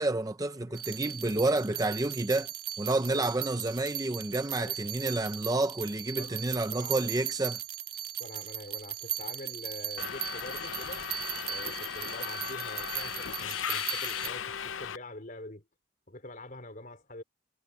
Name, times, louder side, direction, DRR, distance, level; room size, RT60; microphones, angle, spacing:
voice 1, 0.0-2.5 2.8-7.6, right 2 dB, 20° right, 0.6 m, -29 dB
sound 1, 0.7-14.3, right 10 dB, 55° right, 1.9 m, -38 dB
voice 2, 6.7-7.1 8.2-11.1 11.5-15.6 16.1-17.2, left 1 dB, 45° left, 4.3 m, -45 dB
Subway metro underground, 10.0-15.0, left 8 dB, 75° left, 0.7 m, -36 dB
head